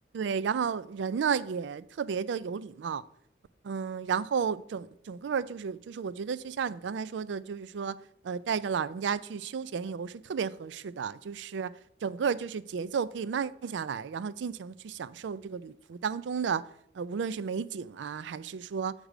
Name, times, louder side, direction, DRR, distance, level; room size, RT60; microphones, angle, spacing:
voice 1, 0.1-3.1 3.7-8.0 8.2-11.7 12.0-16.7 16.9-18.9, right 6 dB, 70° right, 0.3 m, -33 dB
6.5 x 4.8 x 4.9 m
head